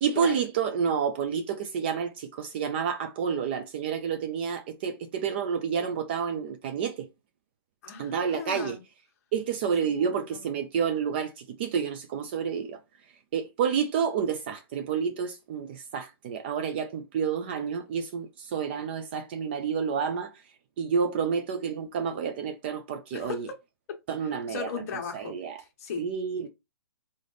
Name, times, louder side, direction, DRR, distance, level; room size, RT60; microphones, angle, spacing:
voice 1, 0.0-7.1 8.0-8.8 9.3-12.8 13.3-20.3 20.8-23.5 24.1-24.7 25.1-25.6 26.0-26.5, right 7 dB, 25° right, 0.4 m, -29 dB
voice 2, 7.8-8.8 9.8-10.5 23.1-23.6 24.2-26.1, left 6 dB, 40° left, 1.2 m, -38 dB
3.7 x 3.4 x 3.9 m
hypercardioid pair, 160°, 13 cm